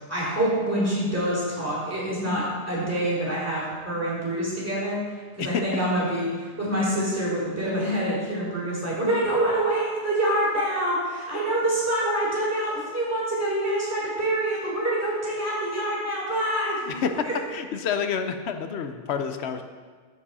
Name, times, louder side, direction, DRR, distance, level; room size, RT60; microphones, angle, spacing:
voice 1, 0.1-5.0 5.4-16.9 17.2-17.3, right 1 dB, 10° right, -7 dB, 3.1 m, -26 dB
voice 2, 16.9-19.6, left 6 dB, 65° left, 7 dB, 0.9 m, -28 dB
14.0 x 5.1 x 4.2 m, 1.5 s
omnidirectional pair, 1.2 m